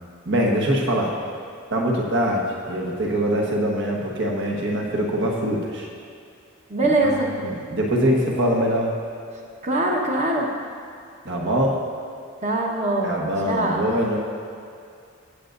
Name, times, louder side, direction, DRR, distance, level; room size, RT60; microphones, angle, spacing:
voice 1, 0.2-1.1 1.7-5.9 7.0-7.1 7.4-8.9 11.2-11.8 13.0-14.2, equal, 60° right, -1 dB, 1.4 m, -23 dB
voice 2, 6.7-7.4 9.6-10.5 12.4-13.8, right 2 dB, 35° right, -1 dB, 1.2 m, -23 dB
17.0 x 8.2 x 2.6 m, 2.4 s
head